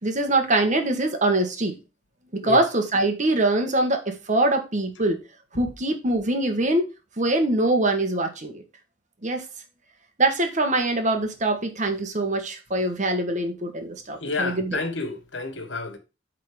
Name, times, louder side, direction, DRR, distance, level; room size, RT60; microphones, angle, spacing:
voice 1, 0.0-1.8 2.3-5.2 5.6-6.8 7.2-8.6 9.2-9.4 10.2-14.8, right 2 dB, 40° right, 1.5 m, -23 dB
voice 2, 14.2-16.0, left 3 dB, 80° left, 1.5 m, -30 dB
8.5 x 3.9 x 5.0 m
head